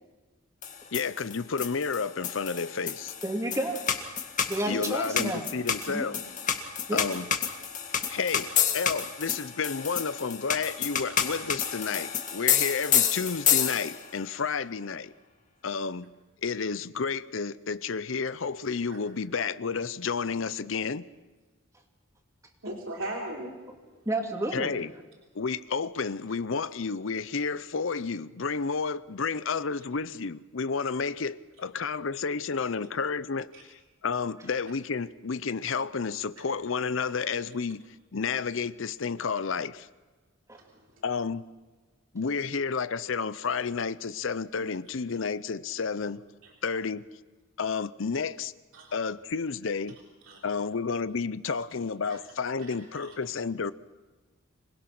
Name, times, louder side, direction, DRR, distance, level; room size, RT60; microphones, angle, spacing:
sound 1, 0.6-14.1, left 8 dB, 40° left, 2.0 m, -29 dB
voice 1, 0.9-3.1 4.7-6.2 6.9-7.3 8.1-15.1 15.6-16.1 16.4-21.1 24.5-24.9 25.3-37.8 38.1-39.9 41.0-41.4 42.1-46.2 46.6-47.0 47.6-48.5 48.9-50.0 50.4-53.7, left 5 dB, 65° left, 0.6 m, -31 dB
voice 2, 3.2-3.8 4.5-5.5 5.9-6.1 6.9-7.0 24.1-24.7 40.5-40.6, right 1 dB, 15° right, 2.8 m, -30 dB
voice 3, 22.6-23.5 33.5-33.6 48.7-48.9 50.3-50.4 52.1-52.2 52.7-53.1, right 1 dB, 70° right, 3.5 m, -37 dB
26.5 x 20.5 x 6.1 m
head